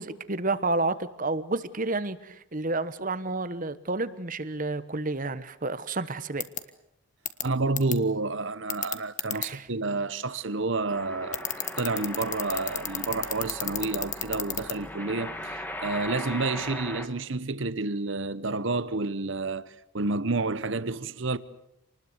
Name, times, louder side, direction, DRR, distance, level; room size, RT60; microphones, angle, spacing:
voice 1, 0.0-6.4 9.3-9.7, right 2 dB, 40° right, 1.2 m, -30 dB
sound 1, 6.4-6.6 7.3-7.4 7.8-7.9 8.7-9.5 11.3-14.7, left 11 dB, 35° left, 1.4 m, -30 dB
voice 2, 7.4-11.5 11.8-21.4, right 3 dB, 60° right, 1.0 m, -29 dB
sound 2, 10.9-17.1, left 1 dB, 10° left, 1.7 m, -38 dB
28.0 x 20.0 x 8.1 m
head